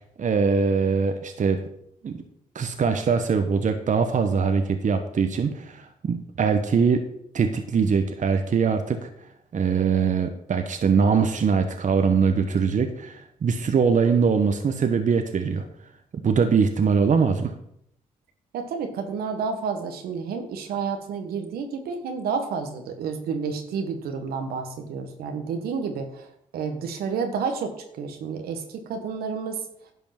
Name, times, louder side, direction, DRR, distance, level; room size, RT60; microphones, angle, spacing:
voice 1, 0.2-1.6 2.0-2.2 2.5-7.1 7.3-9.1 9.5-15.6 16.2-17.5, right 5 dB, 55° right, 7 dB, 1.1 m, -22 dB
voice 2, 18.5-26.3 26.5-29.6, right 5 dB, 80° right, 6 dB, 1.4 m, -30 dB
11.0 x 5.3 x 5.9 m, 0.73 s
supercardioid pair, 45°, 16 cm